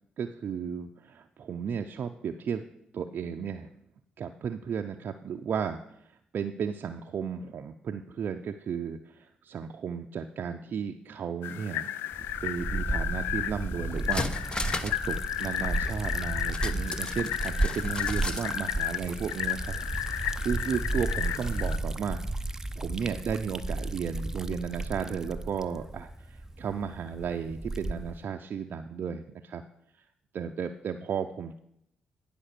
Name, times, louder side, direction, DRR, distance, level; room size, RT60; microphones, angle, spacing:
voice 1, 0.2-2.6 2.9-3.7 4.2-11.9 12.4-14.3 14.5-19.8 20.1-29.6 30.3-31.6, right 7 dB, 60° right, 5 dB, 0.5 m, -34 dB
sound 1, 11.4-21.8, left 12 dB, 80° left, 0.3 m, -34 dB
Liquid, 12.1-28.2, right 2 dB, 15° right, 0.6 m, -34 dB
sound 2, 13.5-13.6 13.9-15.1 15.3-15.4 16.5-18.5 18.8-18.9, left 2 dB, 25° left, 0.9 m, -35 dB
9.9 x 5.1 x 6.6 m, 0.75 s
supercardioid pair, 50°, 4 cm